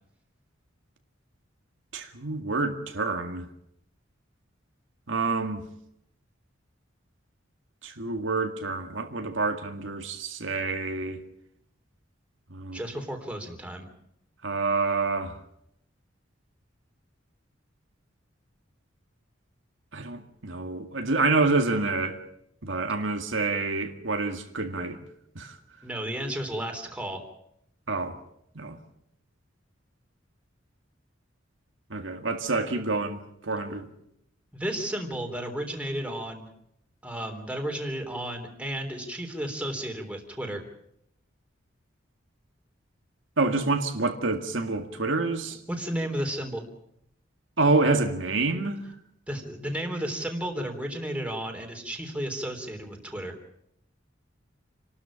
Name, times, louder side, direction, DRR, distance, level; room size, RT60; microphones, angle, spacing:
voice 1, 1.9-3.5 5.1-5.6 7.8-11.2 12.5-12.8 14.4-15.4 19.9-22.2 22.6-25.0 25.4-25.5 27.9-28.2 28.6-28.8 31.9-33.2 33.4-33.9 43.4-45.6 47.6-48.8, right 3 dB, 75° right, 2.0 m, -27 dB
voice 2, 12.7-13.9 25.8-27.2 34.5-36.5 37.0-40.6 45.7-46.7 49.3-53.3, right 1 dB, 5° right, 3.5 m, -33 dB
28.5 x 13.0 x 8.7 m
head